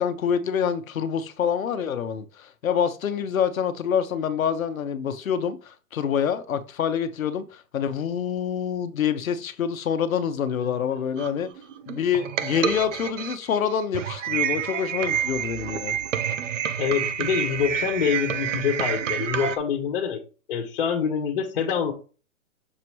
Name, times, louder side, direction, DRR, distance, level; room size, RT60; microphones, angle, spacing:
voice 1, 0.0-11.5 11.9-16.0, left 8 dB, 70° left, 1.0 m, -26 dB
voice 2, 10.6-11.0 16.8-20.2 20.5-21.9, left 7 dB, 40° left, 1.4 m, -26 dB
sound 1, 11.2-19.6, right 9 dB, 60° right, 0.7 m, -28 dB
6.7 x 3.0 x 4.7 m
hypercardioid pair, 170°, 42 cm